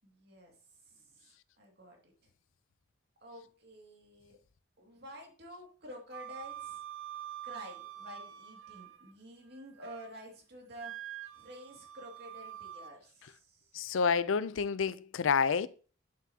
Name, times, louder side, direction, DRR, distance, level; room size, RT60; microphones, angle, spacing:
voice 1, 0.0-0.5 0.8-1.3 1.6-2.3 3.2-4.4 4.8-6.8 7.4-11.0 11.3-13.8, equal, 55° right, 2.3 m, -50 dB
Wind instrument woodwind instrument, 6.1-9.1 9.5-10.2 10.8-13.0, right 11 dB, 85° right, 0.6 m, -46 dB
voice 2, 13.7-15.7, left 5 dB, 80° left, 0.5 m, -29 dB
8.4 x 7.4 x 2.8 m
head